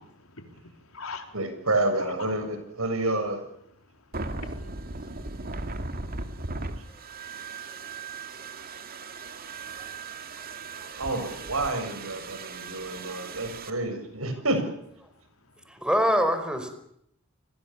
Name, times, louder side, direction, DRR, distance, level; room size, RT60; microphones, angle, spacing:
voice 1, 0.0-1.5 1.9-2.3 3.8-8.3 8.5-11.0 12.3-13.4 15.2-15.3 15.6-15.7, left 4 dB, 80° left, 6 dB, 4.0 m, -49 dB
voice 2, 1.3-3.4 11.0-14.7, right 2 dB, 80° right, 7 dB, 7.3 m, -29 dB
sound 1, 4.1-13.7, right 3 dB, 45° right, 2.4 m, -38 dB
voice 3, 15.7-16.7, equal, 5° right, 8 dB, 4.7 m, -25 dB
29.5 x 21.5 x 7.2 m, 0.74 s
head